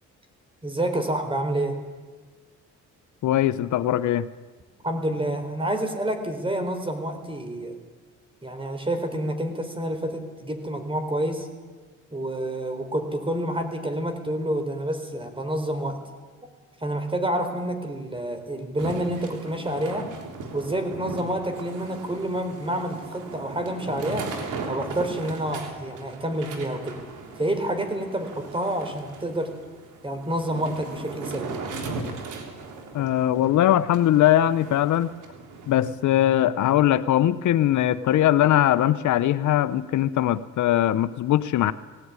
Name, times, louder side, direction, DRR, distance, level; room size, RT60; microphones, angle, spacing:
voice 1, 0.6-1.8 4.8-7.8 8.4-11.5 12.1-16.0 16.8-20.1 20.5-24.3 24.7-27.0 27.4-29.5 30.0-31.6, right 1 dB, 15° right, 7 dB, 4.1 m, -28 dB
voice 2, 3.2-4.3 32.9-35.1 35.7-41.7, left 12 dB, 70° left, 14 dB, 0.9 m, -21 dB
sound 1, 18.8-35.9, right 3 dB, 85° right, 3.4 m, -38 dB
18.5 x 17.5 x 9.7 m, 1.4 s
cardioid pair, 90°, 30 cm